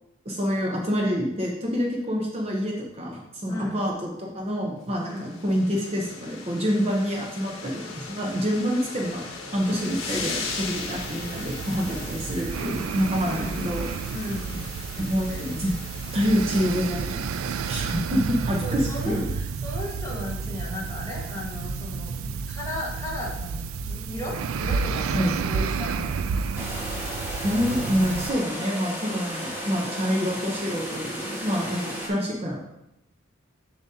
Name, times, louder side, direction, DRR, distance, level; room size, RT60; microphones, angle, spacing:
voice 1, 0.2-9.2 9.5-13.9 15.0-15.8 16.1-17.3 17.6-19.3 25.1-25.3 27.4-32.6, equal, 30° right, -1 dB, 0.8 m, -27 dB
sound 1, 5.0-18.2, left 3 dB, 85° left, 1.2 m, -38 dB
voice 2, 5.0-5.4 13.2-13.7 14.1-14.6 18.6-26.3, left 1 dB, 15° left, -5 dB, 1.5 m, -35 dB
sound 2, 9.8-28.3, right 5 dB, 85° right, 0.4 m, -31 dB
Minigun Burst Audio, 26.5-32.1, equal, 10° right, 1.4 m, -34 dB
7.2 x 6.9 x 2.8 m, 0.86 s
head